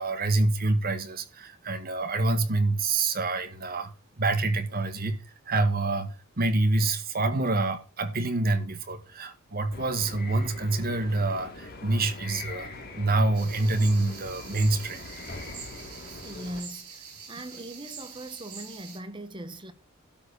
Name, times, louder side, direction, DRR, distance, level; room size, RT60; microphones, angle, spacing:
voice 1, 0.0-3.9 4.2-5.2 5.4-6.1 6.4-12.7 12.9-15.1, right 2 dB, 45° right, 1.5 m, -26 dB
sound 1, 9.7-16.6, left 2 dB, 45° left, 2.5 m, -42 dB
sound 2, 13.3-19.0, right 6 dB, 80° right, 5.2 m, -44 dB
voice 2, 16.2-19.7, right 1 dB, 20° right, 1.1 m, -40 dB
12.5 x 4.8 x 6.8 m
head